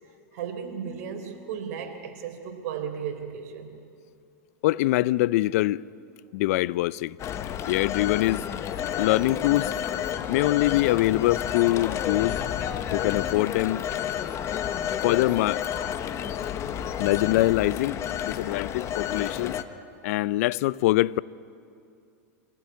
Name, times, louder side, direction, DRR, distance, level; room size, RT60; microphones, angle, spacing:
voice 1, 0.3-3.8, right 7 dB, 65° right, 3.9 m, -35 dB
voice 2, 4.6-5.8 6.3-7.2 7.7-8.4 9.0-9.7 10.3-12.4 12.9-13.8 15.0-15.6 17.0-19.6 20.0-21.2, left 17 dB, 65° left, 0.5 m, -24 dB
Telephone, 7.2-19.6, left 9 dB, 35° left, 1.2 m, -30 dB
25.5 x 17.0 x 9.6 m
hypercardioid pair, 120°, 9 cm